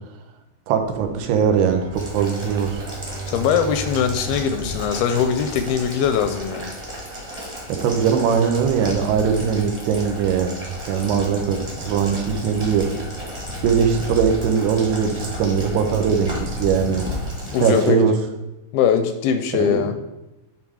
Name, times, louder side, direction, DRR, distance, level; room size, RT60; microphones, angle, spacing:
voice 1, 0.7-2.8 7.7-12.9 13.6-17.1 17.6-18.1 19.5-19.9, right 7 dB, 90° right, 5 dB, 2.9 m, -21 dB
sound 1, 0.8-17.4, left 2 dB, 55° right, 0.5 m, -35 dB
Bowed string instrument, 1.2-6.5, right 5 dB, 70° right, 3.3 m, -36 dB
Boiling, 1.9-17.9, equal, 15° right, 0.9 m, -36 dB
voice 2, 3.3-6.7 17.5-18.1 18.7-19.9, left 7 dB, 80° left, 7 dB, 2.3 m, -21 dB
10.0 x 3.7 x 4.7 m, 0.97 s
omnidirectional pair, 4.6 m